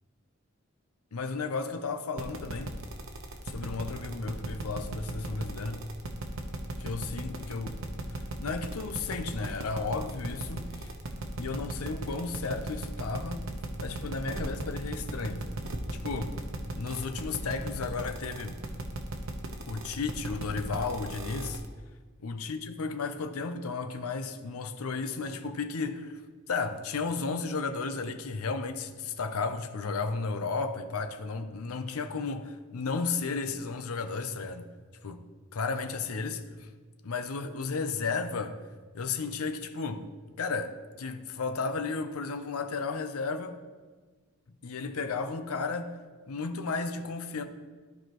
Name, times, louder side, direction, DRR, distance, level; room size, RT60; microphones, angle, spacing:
voice 1, 1.1-2.7 3.5-5.8 6.8-7.8 8.4-10.9 11.4-13.5 13.8-15.5 16.0-16.4 16.7-18.6 19.7-21.6 22.2-26.2 26.5-34.7 35.0-35.2 35.5-36.7 37.0-38.6 38.9-40.1 40.4-43.6 44.6-46.0 46.3-47.4, left 4 dB, 80° left, 0.6 m, -33 dB
sound 1, 2.2-21.6, right 2 dB, 65° right, 0.9 m, -36 dB
13.0 x 4.8 x 3.0 m
head